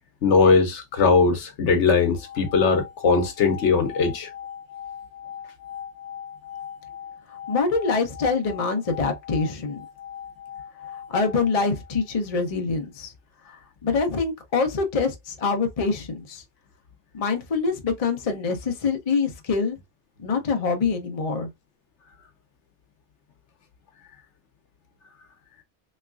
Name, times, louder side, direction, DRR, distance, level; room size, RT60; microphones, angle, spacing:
voice 1, 0.2-4.3, left 4 dB, 75° left, 1.1 m, -20 dB
sound 1, 2.1-12.3, left 9 dB, 5° right, 1.3 m, -40 dB
voice 2, 7.3-9.8 11.1-13.1 13.8-16.4 17.1-19.8 20.2-21.5, left 4 dB, 35° left, 0.7 m, -25 dB
3.5 x 3.2 x 2.4 m
omnidirectional pair, 1.2 m